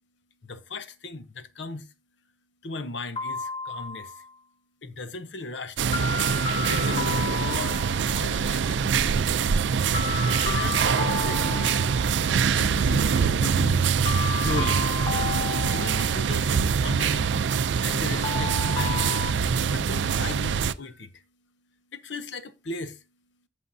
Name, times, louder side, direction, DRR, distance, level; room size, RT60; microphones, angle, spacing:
voice 1, 0.4-1.9 2.6-4.1 4.8-6.1 6.6-9.4 10.4-11.9 12.5-13.9 14.3-14.8 15.7-17.3 17.8-19.1 19.7-21.1 21.9-23.0, left 3 dB, 70° left, 0.8 m, -37 dB
sound 1, 3.2-4.3 5.9-8.2 9.9-12.3 14.1-16.4 18.2-19.3, left 6 dB, 25° left, 0.4 m, -32 dB
sound 2, 5.8-20.7, right 6 dB, 70° right, 0.4 m, -24 dB
11.5 x 6.8 x 2.6 m
head